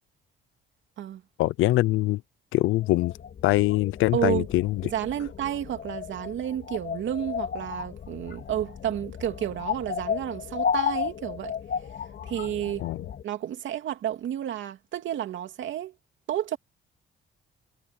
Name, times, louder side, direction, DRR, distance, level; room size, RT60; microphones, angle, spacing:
voice 1, 1.4-2.2 2.5-3.1 3.4-4.9 12.8-13.1, left 17 dB, 85° left, 0.5 m, -23 dB
sound 1, 2.8-13.2, left 7 dB, 55° left, 3.9 m, -34 dB
voice 2, 4.1-4.5 4.8-11.5 12.2-12.9 13.2-15.9 16.3-16.6, right 10 dB, 70° right, 2.7 m, -31 dB
cardioid pair, 90°, 20 cm